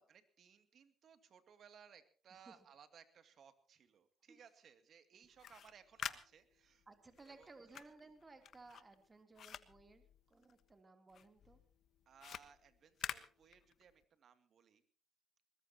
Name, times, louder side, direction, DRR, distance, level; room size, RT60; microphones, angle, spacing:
voice 1, 0.1-6.9 7.2-7.5 12.1-14.8, right 7 dB, 60° right, 10 dB, 2.5 m, -63 dB
sound 1, 5.2-10.8 11.1-14.0, left 9 dB, 65° left, 1.3 m, -49 dB
voice 2, 6.9-11.6, right 3 dB, 25° right, 7 dB, 3.1 m, -60 dB
22.5 x 20.5 x 2.9 m, 0.40 s
cardioid pair, 90°, 0 cm